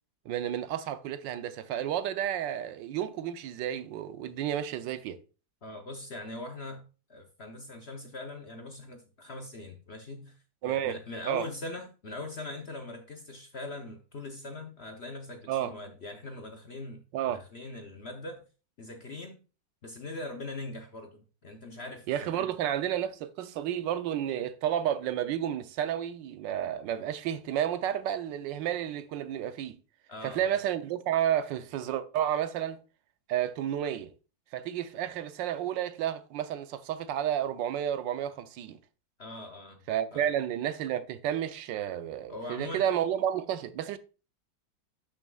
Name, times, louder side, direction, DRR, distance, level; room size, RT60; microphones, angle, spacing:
voice 1, 0.3-5.2 10.6-11.0 11.2-11.5 15.5-15.7 17.1-17.4 22.1-29.8 30.2-32.8 33.3-34.1 34.5-38.8 39.9-44.0, right 10 dB, 85° right, 1.3 m, -31 dB
voice 2, 5.6-6.8 7.1-18.4 18.8-19.4 19.8-22.5 30.1-30.6 39.2-39.8 40.1-40.3 42.3-42.8, left 2 dB, 50° left, 0.8 m, -42 dB
11.5 x 6.3 x 2.3 m
omnidirectional pair, 1.9 m